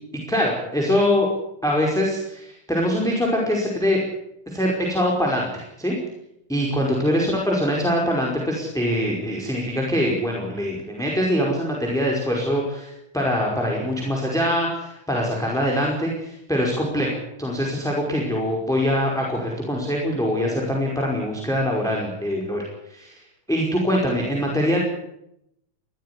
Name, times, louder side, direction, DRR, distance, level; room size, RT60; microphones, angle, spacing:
voice 1, 0.3-1.3 1.6-4.0 4.5-5.9 6.5-23.2 23.5-24.8, equal, ahead, -1 dB, 4.9 m, -23 dB
22.0 x 17.0 x 9.9 m, 0.80 s
omnidirectional pair, 3.7 m